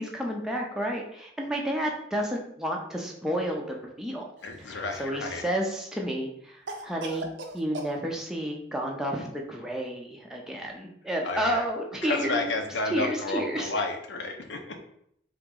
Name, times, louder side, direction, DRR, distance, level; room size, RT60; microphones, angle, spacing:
voice 1, 0.0-4.2 4.6-7.3 7.5-12.5 12.8-13.8, equal, 5° right, -1 dB, 0.5 m, -31 dB
voice 2, 4.4-5.4 11.2-11.6 12.0-14.9, left 2 dB, 75° left, 4 dB, 0.6 m, -31 dB
Cough, 4.4-5.2 6.7-7.9, right 1 dB, 70° right, 0.6 m, -39 dB
3.7 x 3.0 x 3.6 m, 0.71 s
head